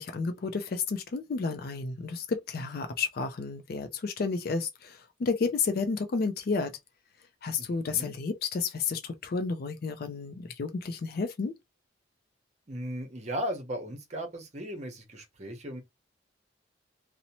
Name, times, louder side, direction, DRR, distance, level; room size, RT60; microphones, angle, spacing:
voice 1, 0.0-6.8 7.4-11.5, left 4 dB, 50° left, 0.4 m, -31 dB
voice 2, 7.6-8.2 12.7-15.8, equal, 35° right, 0.8 m, -37 dB
2.7 x 2.0 x 2.8 m
head